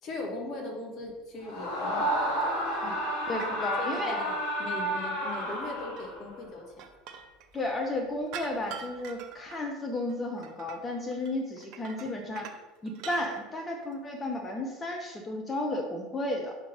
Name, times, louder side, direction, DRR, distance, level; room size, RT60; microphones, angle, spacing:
voice 1, 0.0-2.4 2.8-3.0 3.6-6.8, left 2 dB, 40° left, 0 dB, 1.6 m, -39 dB
Screaming, 1.4-6.3, right 1 dB, 60° left, 1.7 m, -31 dB
sound 1, 2.4-2.9 3.4-3.6 5.7-7.7 8.3-9.6 9.9-10.8 11.1-12.6 12.9-13.5 13.8-14.0, right 7 dB, 50° right, 0.7 m, -45 dB
voice 2, 3.3-4.2 7.5-12.5 12.8-16.5, left 1 dB, 25° left, 3 dB, 0.9 m, -33 dB
6.4 x 3.9 x 5.1 m, 1.2 s
figure-of-eight pair, 70°, 0 cm